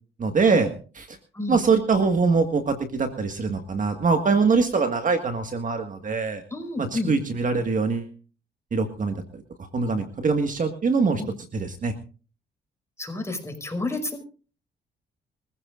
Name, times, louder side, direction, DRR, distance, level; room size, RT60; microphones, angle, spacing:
voice 1, 0.2-0.7 1.0-1.2 1.5-6.4 6.8-8.1 8.7-9.4 9.7-11.2 11.5-11.9, right 4 dB, 40° right, 6 dB, 1.7 m, -23 dB
voice 2, 6.5-7.1 11.2-11.3 13.0-14.2, left 2 dB, 15° left, 5 dB, 5.4 m, -30 dB
24.5 x 15.0 x 2.5 m, 0.37 s
cardioid pair, 90°, 20 cm